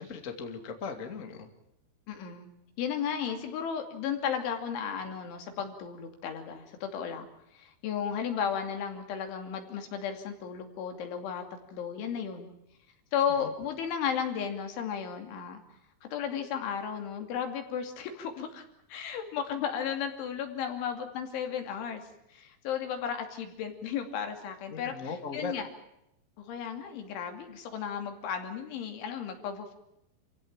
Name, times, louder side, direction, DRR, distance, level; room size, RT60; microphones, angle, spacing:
voice 1, 0.0-1.5 13.3-13.5 24.7-25.5, left 5 dB, 30° left, 5 dB, 1.6 m, -38 dB
voice 2, 2.1-2.5 2.8-11.4 11.7-12.5 13.1-15.6 16.0-22.0 22.3-25.7 26.4-29.7, left 7 dB, 85° left, 5 dB, 5.1 m, -34 dB
28.0 x 16.0 x 8.8 m, 0.82 s
omnidirectional pair, 5.3 m